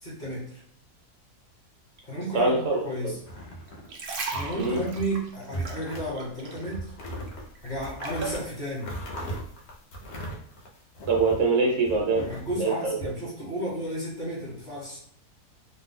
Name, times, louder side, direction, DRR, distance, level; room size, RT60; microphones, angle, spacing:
voice 1, 0.0-0.5 2.0-3.2 4.3-6.9 7.6-9.0 12.2-15.0, right 1 dB, 35° left, -6 dB, 1.0 m, -33 dB
voice 2, 2.3-2.8 4.6-4.8 11.1-12.2 12.5-12.9, right 3 dB, 60° right, -1 dB, 0.9 m, -23 dB
sound 1, 3.2-3.9 4.3-5.1 5.4-6.1 6.5-11.5 11.8-13.1, right 1 dB, 60° left, 0.8 m, -38 dB
sound 2, 3.7-6.7 7.0-8.4 9.0-9.2, right 4 dB, 85° right, 0.4 m, -36 dB
2.6 x 2.1 x 3.5 m, 0.65 s
omnidirectional pair, 1.6 m